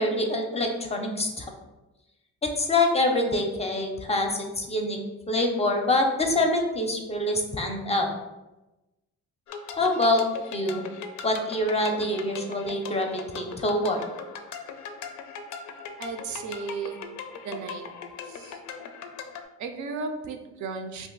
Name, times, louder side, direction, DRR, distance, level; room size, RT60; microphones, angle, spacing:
voice 1, 0.0-1.5 2.4-4.3 4.6-5.0 5.3-8.1 9.8-10.2 10.5-10.8 11.2-14.0, left 1 dB, 20° left, 3 dB, 0.5 m, -25 dB
sound 1, 9.5-19.4, left 6 dB, 75° left, 0.4 m, -40 dB
voice 2, 16.0-17.0 17.4-17.9 18.3-18.6 19.6-21.1, right 4 dB, 70° right, 6 dB, 0.5 m, -35 dB
2.6 x 2.4 x 3.8 m, 1.0 s
cardioid pair, 90°, 30 cm